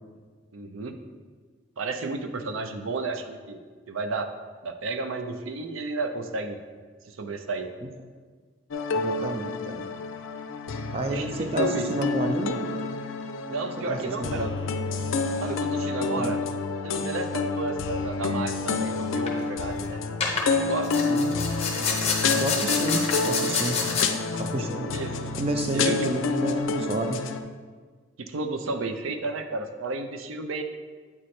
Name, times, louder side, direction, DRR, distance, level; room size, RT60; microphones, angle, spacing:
voice 1, 0.5-1.0 1.8-3.6 3.9-4.3 4.6-6.6 7.1-7.7 11.1-11.8 13.5-14.5 15.4-16.4 16.8-20.0 20.6-20.9 24.9-25.1 25.7-26.1 28.2-30.6, right 3 dB, 90° right, 7 dB, 0.5 m, -32 dB
sound 1, 8.7-27.4, left 4 dB, 75° left, 0.4 m, -29 dB
voice 2, 8.9-9.9 10.9-12.6 13.8-14.6 16.2-16.4 21.1-22.0 22.3-23.8 24.3-24.9 25.3-27.2, right 1 dB, 30° right, 4 dB, 0.4 m, -30 dB
sound 2, 19.0-19.3 20.2-20.5 20.8-24.1, left 5 dB, 30° left, 0.7 m, -28 dB
8.5 x 3.2 x 4.2 m, 1.5 s
head